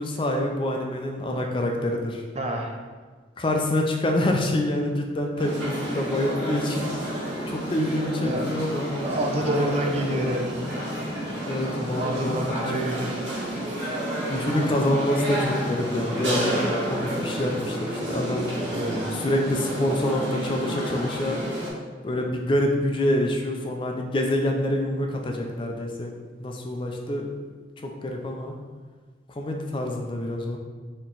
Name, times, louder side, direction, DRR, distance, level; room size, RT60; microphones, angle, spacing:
voice 1, 0.0-2.2 3.4-8.9 9.4-10.3 11.5-13.0 14.3-16.6 16.8-18.5 19.1-21.4 22.0-27.3 27.8-28.5 29.4-30.6, left 1 dB, 30° left, 2 dB, 0.4 m, -26 dB
voice 2, 2.4-2.8 8.2-8.5 9.0-10.6 11.9-13.2 18.1-19.1, right 1 dB, 35° right, 2 dB, 0.5 m, -29 dB
sound 1, 5.4-21.7, equal, 90° right, 1.4 m, -30 dB
4.3 x 3.0 x 3.8 m, 1.5 s
head